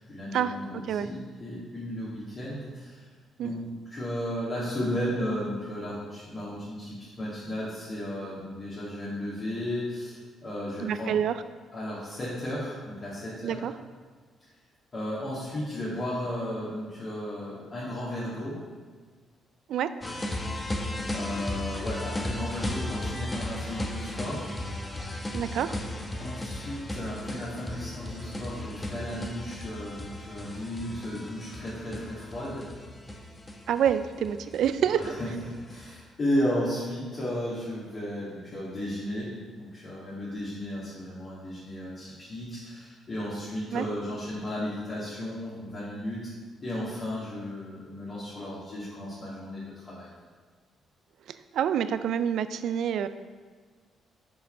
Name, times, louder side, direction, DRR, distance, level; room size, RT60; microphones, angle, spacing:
voice 1, 0.0-3.1 3.4-11.2 11.7-13.6 14.9-18.6 21.1-24.5 26.2-32.7 34.9-46.3 46.6-50.1, left 1 dB, 40° left, -9 dB, 2.2 m, -34 dB
voice 2, 10.8-11.4 13.4-13.7 19.7-19.9 25.3-25.8 33.7-35.2 43.7-43.9 51.5-53.1, right 9 dB, 75° right, 12 dB, 0.4 m, -27 dB
sound 1, 20.0-35.9, left 1 dB, 20° left, 1.0 m, -35 dB
6.8 x 5.1 x 5.4 m, 1.5 s
cardioid pair, 90°, 0 cm